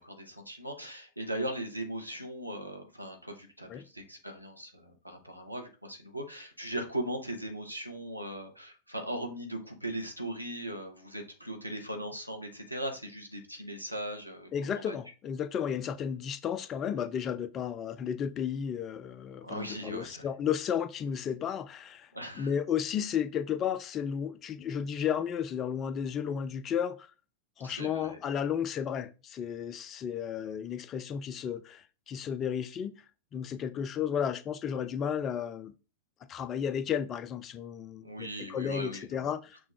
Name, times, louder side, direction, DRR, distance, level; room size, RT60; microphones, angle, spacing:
voice 1, 0.0-15.0 19.4-20.3 22.1-22.5 27.6-28.2 38.0-39.3, right 1 dB, 90° right, 0.8 m, -39 dB
voice 2, 14.5-22.1 22.4-27.1 27.6-32.9 33.3-35.7 36.3-39.7, left 8 dB, 30° left, 0.4 m, -33 dB
6.2 x 2.3 x 3.5 m
figure-of-eight pair, 90°, 0 cm